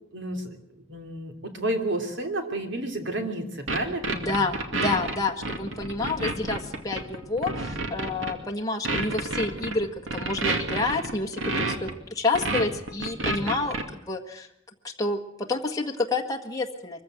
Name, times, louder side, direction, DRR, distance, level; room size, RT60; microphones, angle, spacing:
voice 1, 0.1-0.6 0.9-4.5, right 1 dB, 65° right, 5 dB, 3.1 m, -31 dB
sound 1, 3.7-8.3 8.8-11.9 12.3-13.8, right 2 dB, 80° right, 2.4 m, -29 dB
voice 2, 4.1-13.8 14.1-14.5 14.8-17.0, left 3 dB, 20° left, 2 dB, 1.6 m, -29 dB
23.5 x 15.0 x 7.8 m, 0.78 s
head